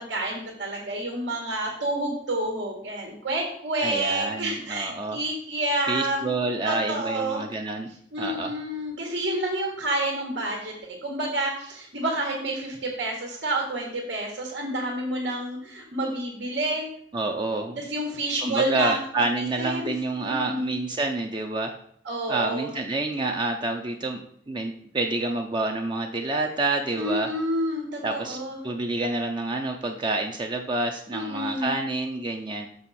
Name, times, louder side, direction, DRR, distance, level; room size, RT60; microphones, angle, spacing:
voice 1, 0.0-6.3 6.6-7.4 8.1-16.9 17.8-19.0 19.4-19.9 20.2-20.7 22.0-22.7 26.9-28.6 31.1-31.7, right 1 dB, 80° right, 0 dB, 1.5 m, -29 dB
voice 2, 3.8-5.2 5.9-8.5 17.1-17.8 18.4-21.7 22.3-27.3 28.0-28.4 28.6-32.7, right 2 dB, 25° right, 3 dB, 0.5 m, -28 dB
6.3 x 6.1 x 4.2 m, 0.64 s
head